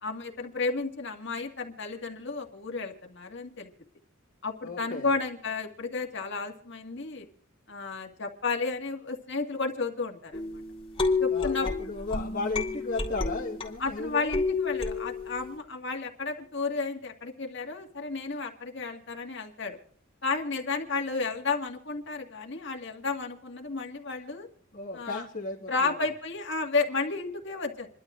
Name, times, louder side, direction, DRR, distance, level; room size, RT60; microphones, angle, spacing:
voice 1, 0.0-3.7 4.4-7.3 7.7-10.4 11.2-11.7 13.8-19.8 20.2-24.5 24.9-25.2 25.7-27.9, left 4 dB, 60° left, 2 dB, 1.8 m, -32 dB
voice 2, 4.6-5.1 11.3-14.4 24.7-26.1, left 3 dB, 45° left, -5 dB, 1.7 m, -35 dB
sound 1, 10.3-13.9 14.3-15.6, left 4 dB, 25° left, 2.9 m, -30 dB
28.0 x 12.0 x 2.5 m, 0.63 s
head